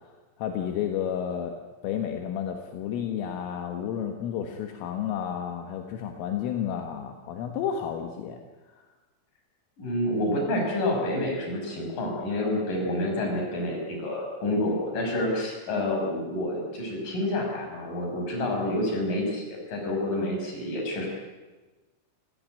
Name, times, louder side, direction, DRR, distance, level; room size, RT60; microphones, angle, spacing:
voice 1, 0.4-1.5 1.8-8.4, left 9 dB, 80° left, 4 dB, 4.0 m, -31 dB
voice 2, 9.8-21.1, left 1 dB, 40° left, 1 dB, 7.2 m, -28 dB
28.5 x 16.0 x 9.2 m, 1.2 s
omnidirectional pair, 5.9 m